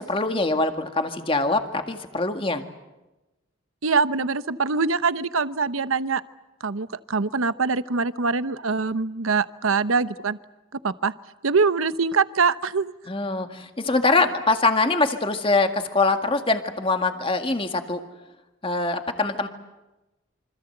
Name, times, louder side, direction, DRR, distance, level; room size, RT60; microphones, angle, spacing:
voice 1, 0.0-2.6 13.1-18.0 18.6-19.5, left 3 dB, 25° left, 6 dB, 1.9 m, -23 dB
voice 2, 3.8-6.2 6.6-10.4 10.8-11.1 11.4-12.9, right 4 dB, 85° right, 13 dB, 0.9 m, -23 dB
27.5 x 25.5 x 7.9 m, 1.0 s
head